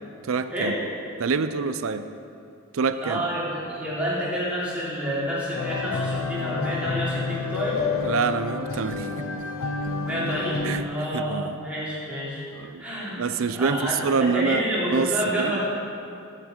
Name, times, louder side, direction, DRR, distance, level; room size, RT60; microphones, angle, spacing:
voice 1, 0.2-0.7 1.2-2.1 2.7-3.2 8.0-9.3 10.6-11.6 12.5-12.8 13.2-15.1 15.4-15.6, right 5 dB, 70° right, 11 dB, 0.5 m, -26 dB
voice 2, 3.0-7.8 10.1-12.4 12.8-15.7, equal, 5° right, -9 dB, 2.9 m, -29 dB
sound 1, 5.5-10.8, left 4 dB, 80° left, 0.7 m, -29 dB
10.5 x 9.9 x 4.4 m, 2.6 s
head